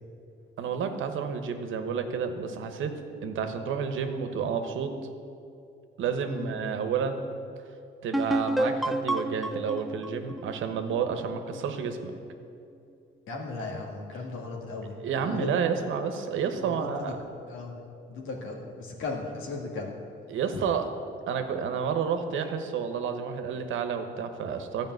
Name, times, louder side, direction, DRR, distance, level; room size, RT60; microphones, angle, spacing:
voice 1, 0.6-2.9 3.2-4.9 6.0-7.2 8.0-12.1 15.0-17.2 20.3-20.9 21.3-24.9, right 6 dB, 80° right, 7 dB, 1.1 m, -30 dB
sound 1, 8.1-11.7, right 1 dB, ahead, 0.6 m, -30 dB
voice 2, 13.3-14.9 15.2-15.5 16.6-16.9 17.5-17.7 18.1-19.9, left 3 dB, 85° left, 0 dB, 2.1 m, -36 dB
13.0 x 5.1 x 9.1 m, 2.6 s
cardioid pair, 90°, 20 cm